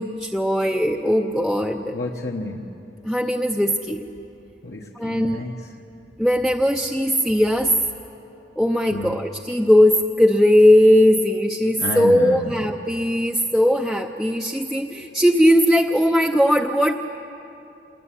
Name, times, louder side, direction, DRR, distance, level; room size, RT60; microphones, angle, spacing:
voice 1, 0.0-2.0 3.0-4.0 4.9-5.4 6.2-7.7 8.6-16.9, equal, ahead, 1 dB, 0.6 m, -19 dB
voice 2, 1.9-2.7 4.6-5.6 8.9-9.1 11.8-12.5, left 2 dB, 55° left, 0 dB, 1.3 m, -30 dB
27.0 x 20.5 x 10.0 m, 2.9 s
head